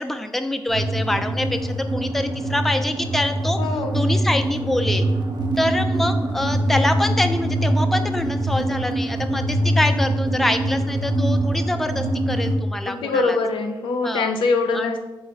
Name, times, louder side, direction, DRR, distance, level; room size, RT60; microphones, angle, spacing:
voice 1, 0.0-3.6 3.9-5.1 5.6-13.4 14.0-14.3 14.7-14.9, left 1 dB, 5° left, 7 dB, 0.3 m, -25 dB
sound 1, 0.7-12.6, right 1 dB, 55° right, 0.6 m, -23 dB
voice 2, 3.6-4.0 12.9-15.0, left 3 dB, 90° left, 4 dB, 0.5 m, -23 dB
3.9 x 2.3 x 4.4 m, 1.1 s
cardioid pair, 70°, 8 cm